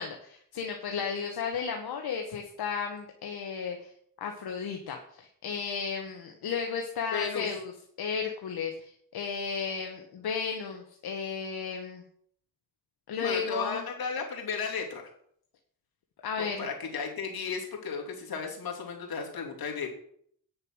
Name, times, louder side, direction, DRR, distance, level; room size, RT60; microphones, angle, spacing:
voice 1, 0.0-3.9 4.2-7.7 8.0-12.0 13.1-13.8 16.2-16.7, left 6 dB, 90° left, 3 dB, 1.2 m, -34 dB
voice 2, 7.1-7.5 13.2-15.0 16.4-19.9, left 5 dB, 75° left, 0 dB, 2.8 m, -34 dB
9.1 x 6.6 x 6.2 m, 0.66 s
cardioid pair, 80°, 37 cm